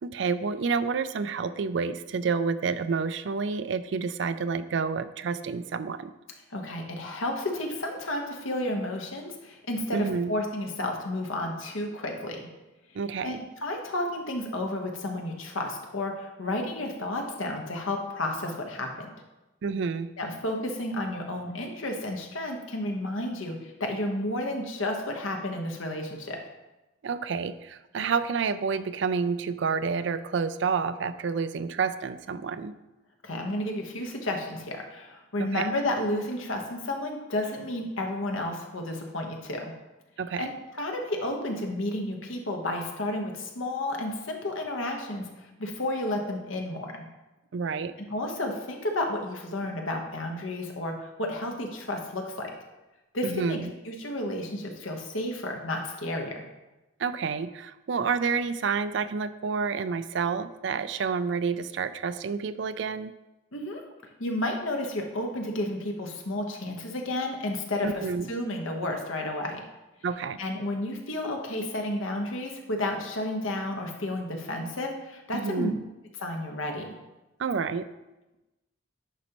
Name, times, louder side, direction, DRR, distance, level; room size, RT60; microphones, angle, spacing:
voice 1, 0.0-6.1 9.9-10.3 12.9-13.4 19.6-20.1 27.0-32.8 35.4-35.7 40.2-40.5 47.5-47.9 53.2-53.7 57.0-63.1 67.8-68.3 70.0-70.4 75.3-75.8 77.4-77.9, right 5 dB, 60° right, 12 dB, 0.4 m, -29 dB
voice 2, 6.5-12.5 13.2-19.1 20.2-26.4 33.2-39.7 40.4-47.0 48.1-52.5 53.1-53.6 53.8-56.4 63.5-63.8 64.2-69.6 70.4-75.7 76.2-76.9, left 1 dB, 75° left, 2 dB, 1.2 m, -32 dB
10.5 x 5.2 x 3.0 m, 1.0 s
head